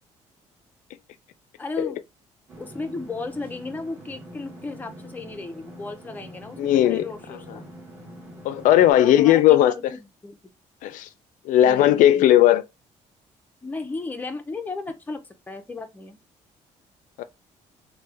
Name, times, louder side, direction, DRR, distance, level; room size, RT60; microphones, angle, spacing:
voice 1, 1.6-2.0 2.6-7.6 9.0-10.4 11.6-12.3 13.6-16.2, left 3 dB, 15° left, 0.5 m, -35 dB
sound 1, 2.5-8.9, right 1 dB, 15° right, 1.2 m, -44 dB
voice 2, 6.6-7.0 8.4-9.7 10.8-11.1 11.5-12.6 17.2-17.3, left 12 dB, 85° left, 0.4 m, -17 dB
3.2 x 2.2 x 3.3 m
cardioid pair, 140°, 13 cm